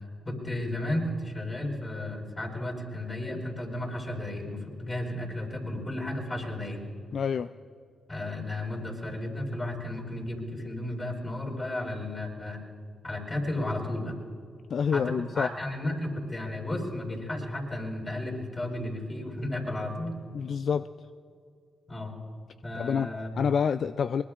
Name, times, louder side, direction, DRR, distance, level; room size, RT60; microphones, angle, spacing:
voice 1, 0.2-6.8 8.1-12.6 13.0-14.1 14.9-20.1 21.9-22.1 22.6-23.3, left 1 dB, 30° left, -1 dB, 4.8 m, -33 dB
voice 2, 7.1-7.5 14.7-15.5 20.3-20.8 22.8-23.1 23.4-24.2, left 7 dB, 65° left, 12 dB, 0.3 m, -27 dB
23.5 x 21.0 x 2.5 m, 2.4 s
supercardioid pair, 50°, 0 cm